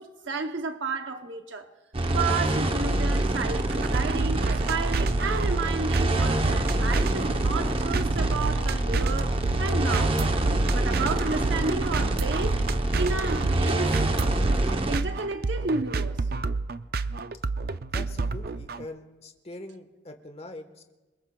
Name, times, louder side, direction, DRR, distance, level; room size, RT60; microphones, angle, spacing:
voice 1, 0.0-1.7 2.1-10.2 10.7-12.6 12.9-14.0 14.3-14.5 14.9-16.3, right 4 dB, 70° right, 0.8 m, -32 dB
sound 1, 1.9-15.0, right 1 dB, 30° right, 0.8 m, -26 dB
sound 2, 3.5-18.8, right 4 dB, 50° right, 0.4 m, -30 dB
voice 2, 17.9-20.9, left 1 dB, 30° left, 1.2 m, -43 dB
28.0 x 20.0 x 2.3 m
head